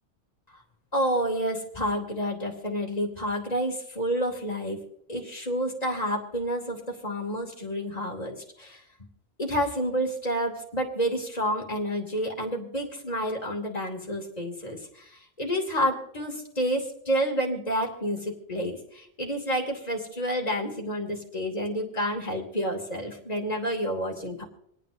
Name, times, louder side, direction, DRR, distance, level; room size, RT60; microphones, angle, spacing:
voice 1, 0.9-4.8 5.1-8.8 9.4-24.4, equal, 35° left, 0 dB, 2.7 m, -29 dB
28.0 x 9.4 x 2.6 m, 0.72 s
omnidirectional pair, 1.1 m